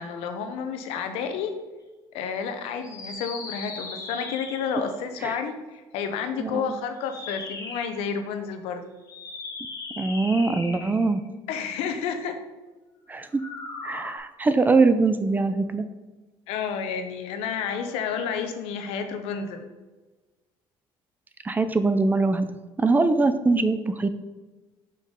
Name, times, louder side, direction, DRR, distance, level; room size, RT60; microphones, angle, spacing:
voice 1, 0.0-1.6 2.1-8.9 11.5-12.4 16.5-19.7, left 6 dB, 85° left, 8 dB, 0.8 m, -30 dB
sound 1, 2.8-4.9 7.0-8.0 9.0-11.2 13.3-14.2, left 3 dB, 35° left, 1.2 m, -38 dB
voice 2, 6.4-6.8 10.0-11.2 13.1-13.4 13.8-15.9 21.4-22.5 22.8-24.1, right 3 dB, 20° right, 11 dB, 0.4 m, -22 dB
5.6 x 5.2 x 3.7 m, 1.2 s
cardioid pair, 110°, 10 cm